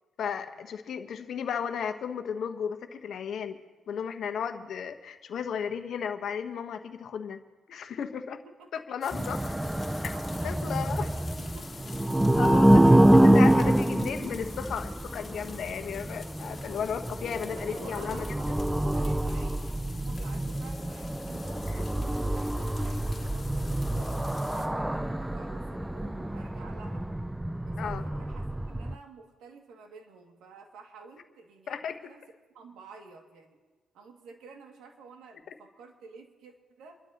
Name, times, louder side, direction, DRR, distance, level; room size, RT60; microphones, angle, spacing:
voice 1, 0.2-3.6 3.9-7.4 7.7-8.4 8.7-9.4 10.4-11.0 12.4-18.2 27.8-28.0 31.7-32.0, left 7 dB, 65° left, 7 dB, 1.2 m, -34 dB
voice 2, 8.4-8.8 10.1-11.7 13.5-13.8 17.5-27.1 27.6-32.2 32.5-33.6 33.9-37.0, right 4 dB, 85° right, 2 dB, 2.3 m, -51 dB
sound 1, 9.0-24.7, left 4 dB, 35° left, 2.4 m, -48 dB
sound 2, 9.1-29.0, right 1 dB, 5° right, 0.4 m, -26 dB
28.0 x 12.0 x 3.0 m, 1.3 s
cardioid pair, 90°, 0 cm